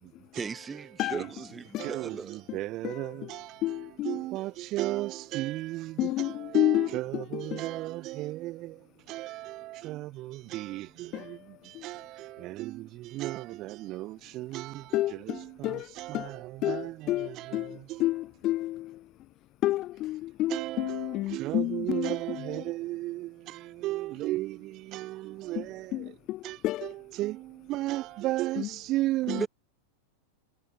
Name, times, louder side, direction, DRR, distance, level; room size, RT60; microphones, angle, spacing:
voice 1, 0.3-2.4 29.4-29.5, right 5 dB, 15° right, 1.2 m, -37 dB
voice 2, 1.8-18.0 20.5-26.0 26.4-29.5, right 17 dB, 35° right, 0.9 m, -35 dB
voice 3, 2.8-4.2 6.0-7.7 11.1-11.5 11.7-11.9 14.9-19.1 19.6-22.6 25.6-25.7 25.9-26.9 28.6-28.7 29.3-29.4, left 16 dB, 35° left, 0.4 m, -31 dB
figure-of-eight pair, 90°, 0 cm